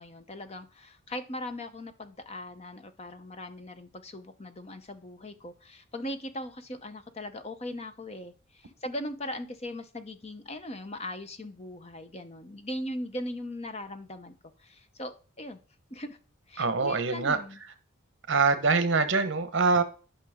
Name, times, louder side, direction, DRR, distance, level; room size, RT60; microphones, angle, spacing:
voice 1, 0.0-14.3 14.6-15.6 15.9-16.2 16.5-17.6, left 1 dB, 30° left, 0.8 m, -39 dB
voice 2, 16.6-17.4 18.3-19.8, right 4 dB, 55° right, 1.1 m, -24 dB
11.5 x 5.9 x 3.7 m
head